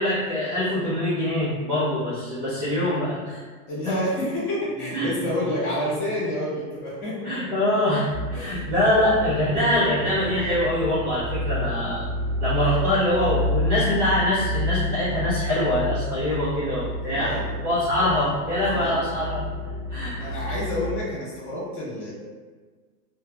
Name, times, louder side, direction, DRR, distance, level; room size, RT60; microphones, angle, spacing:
voice 1, 0.0-3.4 4.9-5.1 7.2-12.0 12.4-17.3 17.6-19.4 19.9-20.3, left 1 dB, 15° right, -14 dB, 0.3 m, -24 dB
voice 2, 3.7-7.3 8.3-8.7 17.1-17.5 18.7-18.9 20.2-22.1, left 1 dB, 40° left, -8 dB, 1.4 m, -29 dB
sound 1, 4.7-7.5, right 1 dB, 65° left, 1.4 m, -43 dB
sound 2, 8.1-21.0, equal, 30° right, 0.8 m, -30 dB
2.8 x 2.1 x 2.2 m, 1.4 s
hypercardioid pair, 125°, 48 cm